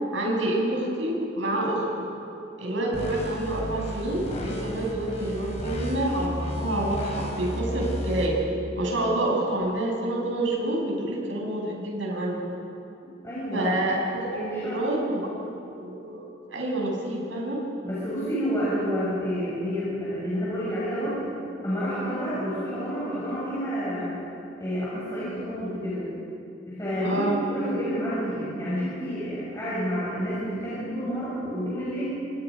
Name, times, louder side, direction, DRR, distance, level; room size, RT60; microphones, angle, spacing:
voice 1, 0.1-1.8 2.6-8.4 8.8-12.3 13.5-15.3 15.7-16.2 16.5-17.6 27.0-27.3, right 1 dB, 85° right, -2 dB, 7.1 m, -28 dB
sound 1, 2.9-8.3, equal, 35° left, 4.1 m, -33 dB
voice 2, 13.2-13.7 14.3-14.8 17.8-21.2 21.6-24.1 24.6-26.1 26.7-32.0, equal, 15° left, -10 dB, 7.1 m, -29 dB
27.0 x 24.5 x 5.3 m, 2.8 s
head